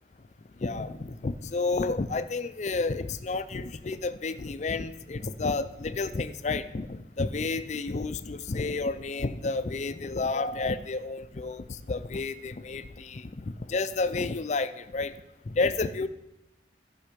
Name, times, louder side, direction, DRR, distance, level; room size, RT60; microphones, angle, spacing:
voice 1, 0.6-15.1 15.5-16.1, left 3 dB, 40° left, 12 dB, 0.5 m, -31 dB
15.0 x 5.6 x 5.1 m, 0.91 s
head